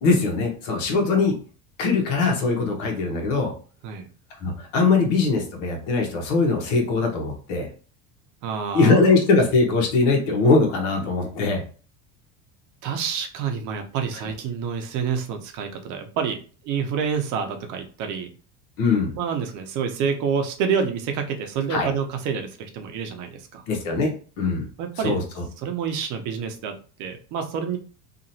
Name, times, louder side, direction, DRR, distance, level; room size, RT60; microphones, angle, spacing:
voice 1, 0.0-1.4 1.8-3.5 4.4-7.7 8.7-11.6 18.8-19.1 21.7-21.9 23.7-24.7 25.0-25.4, left 3 dB, 80° left, 2 dB, 1.1 m, -21 dB
voice 2, 8.4-9.0 12.8-16.4 16.6-18.3 19.2-23.6 24.8-25.2 25.6-27.8, right 6 dB, 55° right, 5 dB, 0.7 m, -28 dB
2.9 x 2.5 x 2.7 m, 0.39 s
supercardioid pair, 115°, 37 cm